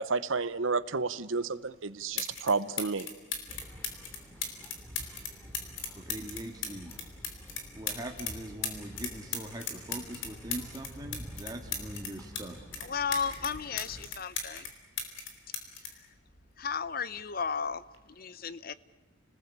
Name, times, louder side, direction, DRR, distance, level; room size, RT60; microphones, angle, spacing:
voice 1, 0.0-3.1, right 4 dB, 75° right, 15 dB, 1.0 m, -31 dB
sound 1, 1.7-1.8 2.2-2.5 2.8-8.3 8.6-12.4 12.7-14.7 15.0-16.8 17.7-18.0, left 6 dB, 70° left, 4.2 m, -36 dB
sound 2, 3.5-14.1, equal, 10° left, 2.9 m, -49 dB
voice 2, 6.0-6.9 7.8-12.6, right 1 dB, 20° right, 2 dB, 1.9 m, -42 dB
voice 3, 12.8-14.7 16.0-16.1 16.6-18.7, left 6 dB, 45° left, 17 dB, 0.8 m, -34 dB
30.0 x 20.0 x 8.4 m, 1.3 s
head